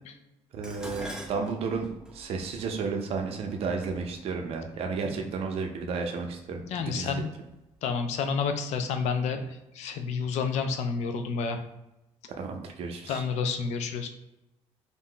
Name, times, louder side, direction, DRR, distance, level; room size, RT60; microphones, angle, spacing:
voice 1, 0.5-1.9 2.1-7.2 12.4-13.2, right 4 dB, 55° right, 3 dB, 0.5 m, -32 dB
Dishes pots and pans, 0.6-5.0 5.9-6.3 6.7-7.5 7.8-7.9, right 1 dB, 5° right, 0.4 m, -45 dB
voice 2, 6.6-7.3 7.8-9.4 9.8-11.6 13.1-14.1, left 5 dB, 75° left, 7 dB, 0.4 m, -29 dB
2.5 x 2.1 x 3.7 m, 0.95 s
cardioid pair, 150°, 12 cm